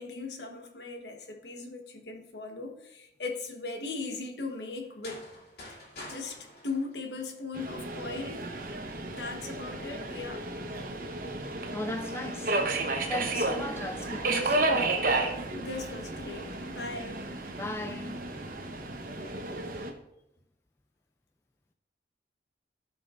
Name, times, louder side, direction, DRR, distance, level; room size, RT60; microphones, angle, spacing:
voice 1, 0.0-5.2 6.1-8.4 9.1-10.4 15.5-17.2, left 3 dB, 75° left, 1.2 m, -38 dB
sound 1, 4.8-7.7, left 1 dB, 60° left, 2.8 m, -47 dB
Subway metro underground, 7.5-19.9, right 2 dB, 50° right, 1.0 m, -32 dB
voice 2, 11.3-12.6 13.1-15.0 17.6-19.1, left 1 dB, 15° left, 0.4 m, -38 dB
15.5 x 5.5 x 2.5 m
head